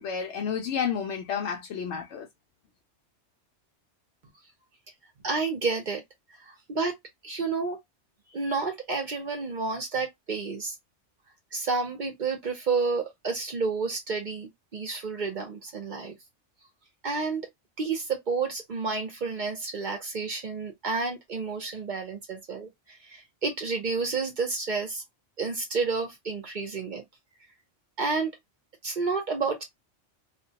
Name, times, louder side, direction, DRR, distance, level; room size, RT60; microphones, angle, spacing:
voice 1, 0.0-2.3, left 7 dB, 70° left, 0.8 m, -31 dB
voice 2, 5.2-6.0 6.4-6.9 7.2-7.8 8.3-10.8 11.5-16.2 17.0-17.4 17.8-25.0 25.4-27.0 28.0-28.3 28.8-29.6, right 4 dB, 50° right, 0.6 m, -30 dB
2.5 x 2.0 x 2.7 m
omnidirectional pair, 1.2 m